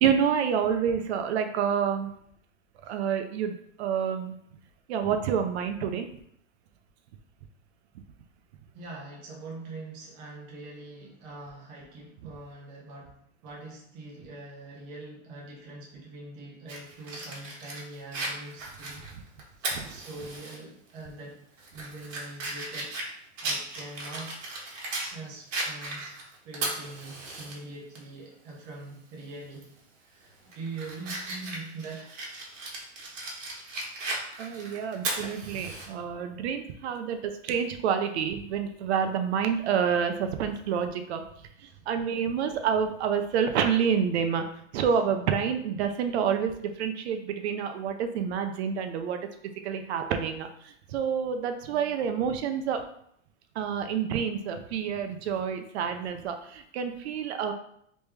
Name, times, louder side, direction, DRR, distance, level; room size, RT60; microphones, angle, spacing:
voice 1, 0.0-2.1 2.9-4.4 4.9-6.1 19.7-19.8 34.4-41.2 41.9-44.4 44.7-49.2 49.6-52.8 53.6-57.5, right 7 dB, 60° right, 7 dB, 0.5 m, -28 dB
voice 2, 8.7-19.1 19.6-21.5 21.7-24.4 25.1-26.2 26.4-32.2 41.6-41.7, right 2 dB, 15° right, -3 dB, 0.3 m, -43 dB
Fire, 16.7-20.6 21.0-21.1 21.6-25.1 25.5-27.5 27.9-28.0 29.5-29.8 30.3-35.9, right 2 dB, 90° right, 1.3 m, -36 dB
3.2 x 3.0 x 3.3 m, 0.70 s
supercardioid pair, 155°, 37 cm